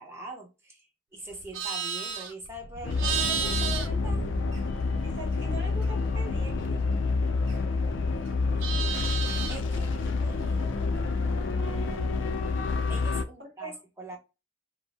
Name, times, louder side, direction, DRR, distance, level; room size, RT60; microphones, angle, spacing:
voice 1, 0.0-4.3 9.5-11.2 12.9-14.2, right 2 dB, 15° right, 0.8 m, -43 dB
Livestock farm animals working animals, 1.3-5.0 5.3-7.8 8.2-9.7, right 6 dB, 80° right, 0.5 m, -34 dB
sound 1, 2.8-13.2, left 4 dB, 70° left, 0.4 m, -28 dB
voice 2, 5.0-6.9 13.4-13.7, right 3 dB, 65° right, 1.5 m, -42 dB
2.6 x 2.1 x 3.0 m
head